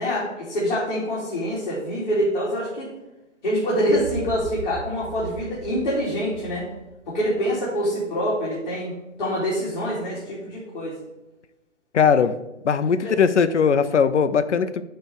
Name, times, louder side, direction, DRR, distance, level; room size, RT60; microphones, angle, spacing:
voice 1, 0.0-2.9 3.4-6.6 7.1-11.0 13.0-13.2, equal, 40° left, -7 dB, 2.7 m, -25 dB
sound 1, 3.9-7.8, right 5 dB, 55° right, 0.8 m, -39 dB
voice 2, 11.9-12.4 12.6-14.8, left 6 dB, 75° left, 13 dB, 0.7 m, -19 dB
9.5 x 3.4 x 6.6 m, 1.0 s
hypercardioid pair, 155°, 36 cm